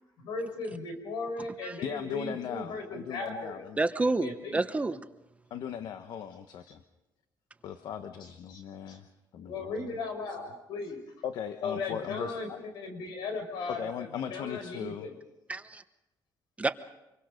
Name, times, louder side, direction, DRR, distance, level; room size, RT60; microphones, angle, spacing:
voice 1, 0.2-3.7 4.2-4.6 8.5-8.6 8.9-9.0 9.5-11.0 11.6-12.5 12.7-15.1, left 3 dB, 90° left, 6 dB, 5.5 m, -37 dB
voice 2, 1.8-3.8 5.5-6.8 7.6-9.1 9.3-9.9 10.3-10.4 11.2-12.6 13.7-15.1, left 8 dB, 75° left, 9 dB, 1.2 m, -38 dB
voice 3, 3.8-5.0 15.5-15.8 16.6-16.7, right 3 dB, 20° right, 10 dB, 1.0 m, -29 dB
26.5 x 23.0 x 5.2 m, 0.96 s
cardioid pair, 115°, 7 cm